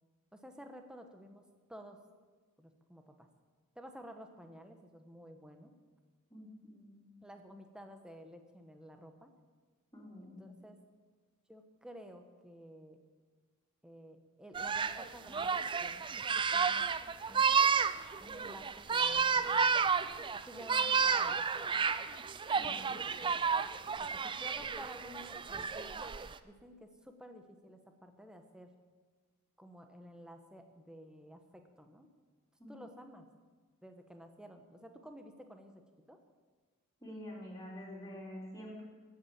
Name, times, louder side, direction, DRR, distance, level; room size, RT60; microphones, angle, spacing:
voice 1, 0.3-2.0 2.6-3.3 3.7-5.7 7.2-9.3 10.2-10.8 11.5-13.0 13.8-16.9 17.3-17.5 18.2-19.9 20.4-21.4 22.6-23.4 24.0-26.1 26.4-28.7 29.6-32.1 32.7-33.3 33.8-36.2, equal, 5° right, 5 dB, 1.0 m, -53 dB
voice 2, 6.3-7.0 9.9-10.5 22.5-22.9 32.6-32.7 37.0-38.8, equal, 15° left, -4 dB, 3.6 m, -47 dB
sound 1, 14.5-26.3, right 6 dB, 20° right, 0.4 m, -31 dB
13.0 x 8.3 x 8.6 m, 1.4 s
head